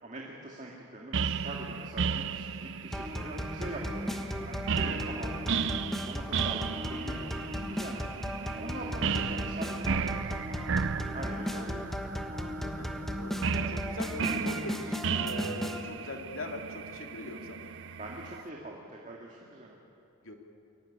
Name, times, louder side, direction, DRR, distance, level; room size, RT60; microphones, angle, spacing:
voice 1, 0.0-4.0 4.5-5.6 6.0-8.3 8.6-10.4 11.1-12.0 17.9-19.8, right 1 dB, 35° right, -2 dB, 2.1 m, -43 dB
sound 1, 1.1-18.4, right 5 dB, 60° right, 0.6 m, -35 dB
sound 2, 2.9-15.8, equal, ahead, 1.2 m, -36 dB
voice 2, 12.6-17.7 20.2-20.3, left 1 dB, 70° left, 3 dB, 2.4 m, -42 dB
23.0 x 15.5 x 9.9 m, 2.8 s
head